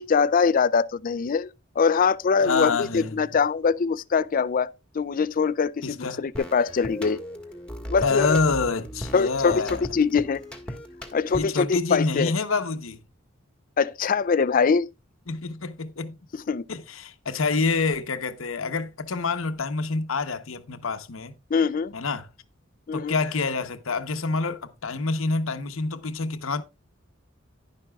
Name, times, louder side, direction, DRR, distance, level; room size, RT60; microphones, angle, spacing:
voice 1, 0.0-1.5 1.8-4.7 4.9-7.2 7.9-8.4 9.1-10.4 11.1-12.3 13.8-14.9 16.5-16.6 21.5-21.9 22.9-23.1, left 5 dB, 45° left, 0.4 m, -23 dB
voice 2, 2.4-3.2 5.8-6.2 8.0-9.8 11.3-13.0 15.3-16.2 16.7-21.4 21.9-22.3 22.9-26.6, left 4 dB, 90° left, 0.9 m, -27 dB
sound 1, 6.3-11.7, equal, 5° left, 1.6 m, -37 dB
10.5 x 10.5 x 2.3 m
head